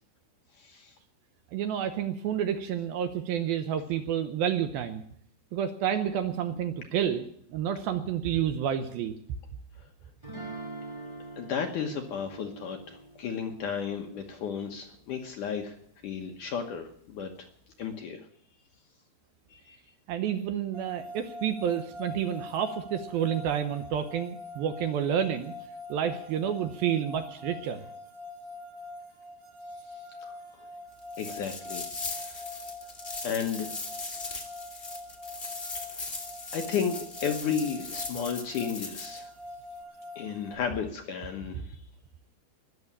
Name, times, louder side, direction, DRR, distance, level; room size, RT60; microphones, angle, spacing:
voice 1, 0.5-1.0 9.8-9.9 11.4-15.8 16.0-17.5 17.8-18.3 19.5-19.8 29.9-30.4 31.2-31.8 32.1-32.5 33.2-33.9 35.7-36.1 36.5-39.3 40.2-41.8, left 7 dB, 65° left, 3 dB, 2.1 m, -34 dB
voice 2, 1.5-5.0 5.5-9.1 20.1-25.5 25.9-27.8 41.5-41.7, right 9 dB, 75° right, 9 dB, 2.3 m, -29 dB
sound 1, 10.2-15.2, right 2 dB, 10° right, 1.3 m, -45 dB
sound 2, 20.7-40.5, left 2 dB, 35° right, 3.1 m, -44 dB
sound 3, 31.1-39.2, left 3 dB, 40° left, 0.8 m, -39 dB
20.0 x 7.2 x 8.6 m, 0.67 s
omnidirectional pair, 4.9 m